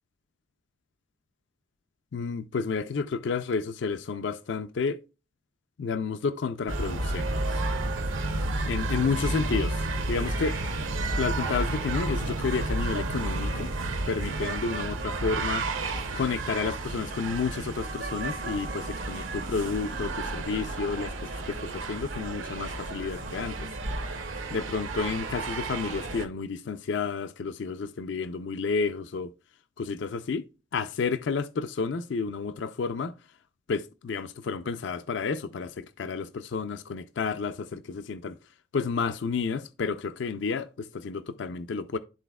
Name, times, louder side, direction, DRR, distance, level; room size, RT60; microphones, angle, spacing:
voice 1, 2.1-5.0 5.8-7.3 8.7-10.6 11.2-13.7 14.1-15.6 16.1-23.7 24.5-29.3 29.8-30.4 30.7-33.1 33.7-38.3 38.7-42.0, left 5 dB, 65° left, 0.4 m, -31 dB
sound 1, 6.7-26.3, right 2 dB, 80° right, 1.0 m, -31 dB
12.5 x 4.1 x 2.3 m
head